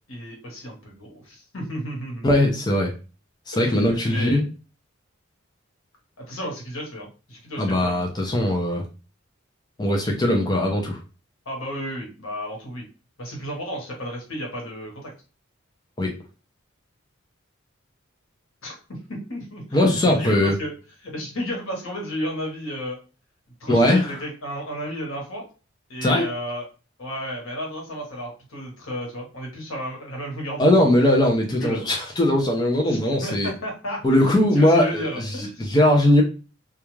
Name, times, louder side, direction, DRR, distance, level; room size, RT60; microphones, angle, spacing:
voice 1, 0.1-2.3 3.5-4.4 6.2-8.1 11.4-12.8 13.2-15.1 18.6-20.7 21.0-23.0 23.6-25.4 25.9-26.7 27.0-30.7 31.6-31.8 32.9-34.2 34.5-35.7, equal, 90° left, -1 dB, 1.1 m, -33 dB
voice 2, 2.2-2.9 3.5-4.4 7.6-8.9 9.8-11.0 16.0-16.1 19.7-20.6 23.7-24.1 26.0-26.3 30.6-33.5 34.0-36.2, left 1 dB, 20° left, 0 dB, 0.4 m, -20 dB
2.3 x 2.2 x 3.0 m, 0.34 s
head